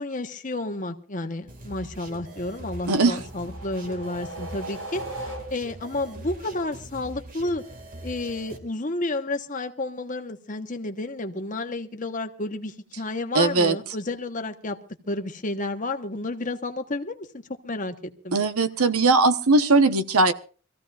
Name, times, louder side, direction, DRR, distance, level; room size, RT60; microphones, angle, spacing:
voice 1, 0.0-7.6 8.0-14.8 15.1-18.4, left 2 dB, 35° left, 6 dB, 1.2 m, -31 dB
sound 1, 1.5-8.6, right 1 dB, 40° right, 2.3 m, -42 dB
sound 2, 2.9-5.9, right 1 dB, 65° right, 6.0 m, -38 dB
voice 2, 2.9-3.2 13.3-13.8 18.3-20.3, right 3 dB, 85° right, 10 dB, 1.2 m, -19 dB
25.0 x 15.5 x 2.5 m, 0.38 s
head